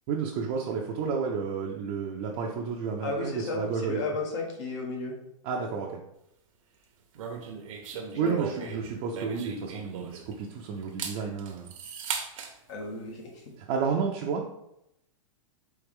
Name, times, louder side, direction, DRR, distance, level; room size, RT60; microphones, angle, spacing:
voice 1, 0.1-4.0 5.4-6.0 8.2-11.7 13.6-14.6, right 5 dB, 40° right, -1 dB, 0.6 m, -31 dB
voice 2, 3.0-5.2 8.1-8.8 12.7-13.3, left 2 dB, 60° left, 0 dB, 1.2 m, -34 dB
sound 1, 7.1-10.4 10.8-12.5, right 6 dB, 65° right, 0.9 m, -38 dB
4.5 x 3.1 x 3.6 m, 0.81 s
hypercardioid pair, 145°, 18 cm